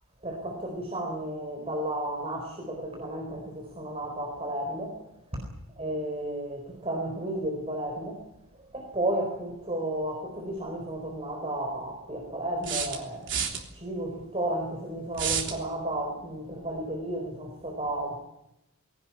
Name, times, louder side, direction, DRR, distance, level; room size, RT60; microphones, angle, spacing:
voice 1, 0.2-5.0 5.3-5.5 5.8-8.2 8.7-13.3 13.7-18.2, right 1 dB, 30° right, 4.2 m, -33 dB
sound 1, 10.6-10.7 12.6-13.6 15.1-15.6, right 7 dB, 55° right, 3.4 m, -29 dB
21.0 x 18.0 x 9.8 m
head